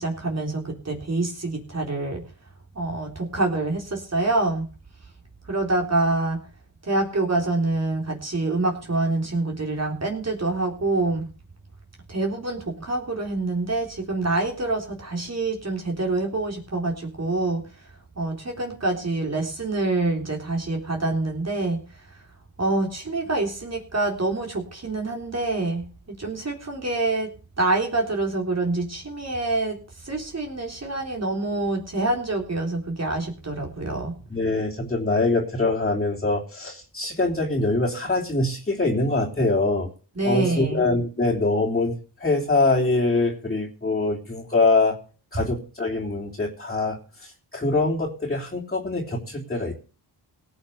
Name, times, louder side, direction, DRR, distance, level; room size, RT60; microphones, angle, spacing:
voice 1, 0.0-2.2 2.7-4.7 5.5-6.4 6.8-11.3 12.1-17.7 18.2-21.8 22.6-27.3 27.6-29.8 30.0-34.2 40.2-40.8, right 2 dB, 35° right, 1 dB, 3.8 m, -26 dB
voice 2, 34.3-39.9 40.2-41.9 42.2-45.0 45.3-49.7, left 2 dB, 20° left, -3 dB, 3.4 m, -24 dB
17.5 x 6.6 x 6.7 m, 0.37 s
cardioid pair, 70°, 46 cm